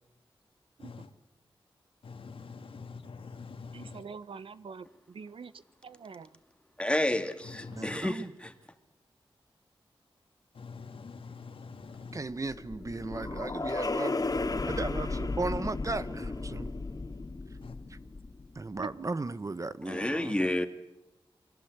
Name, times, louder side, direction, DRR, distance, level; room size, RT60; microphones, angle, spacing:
voice 1, 2.0-4.0 7.4-8.0 10.5-12.2 17.6-17.8, left 4 dB, 85° left, 2.3 m, -45 dB
voice 2, 3.7-6.3 18.8-19.1, right 5 dB, 85° right, 1.0 m, -44 dB
voice 3, 6.8-8.5 19.8-20.7, left 1 dB, 10° left, 2.3 m, -30 dB
voice 4, 7.7-8.3 12.1-14.1 14.7-16.7 18.5-20.4, right 3 dB, 35° right, 1.0 m, -36 dB
sound 1, 12.1-18.6, left 3 dB, 45° left, 2.3 m, -34 dB
28.5 x 22.0 x 8.1 m
wide cardioid pair, 75°, 9 cm